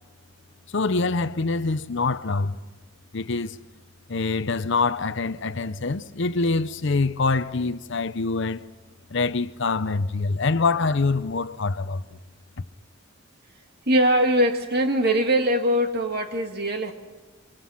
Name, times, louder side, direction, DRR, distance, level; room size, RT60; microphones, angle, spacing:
voice 1, 0.7-2.6 3.1-3.6 4.1-8.6 9.1-12.0, left 3 dB, 55° left, 0.7 m, -25 dB
voice 2, 13.9-16.9, right 1 dB, 45° right, 2.1 m, -22 dB
25.5 x 24.5 x 5.7 m
head